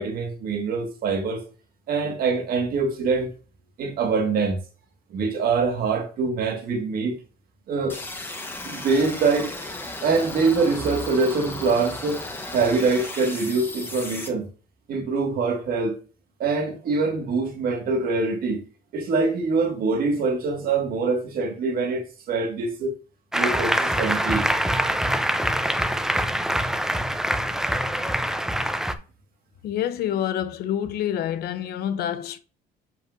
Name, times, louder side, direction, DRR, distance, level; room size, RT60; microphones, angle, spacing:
voice 1, 0.0-1.4 1.9-3.3 3.8-4.6 5.1-7.2 7.7-8.0 8.6-9.6 10.0-12.2 12.5-14.5 14.9-16.0 16.4-18.6 18.9-22.9 23.3-24.5, right 4 dB, 60° right, 1.8 m, -24 dB
sound 1, 7.9-14.3, left 2 dB, 15° left, 1.2 m, -35 dB
Applause, 23.3-29.0, equal, 5° right, 0.6 m, -24 dB
voice 2, 29.6-32.4, left 10 dB, 70° left, 0.8 m, -27 dB
7.7 x 5.3 x 2.6 m
cardioid pair, 110°, 17 cm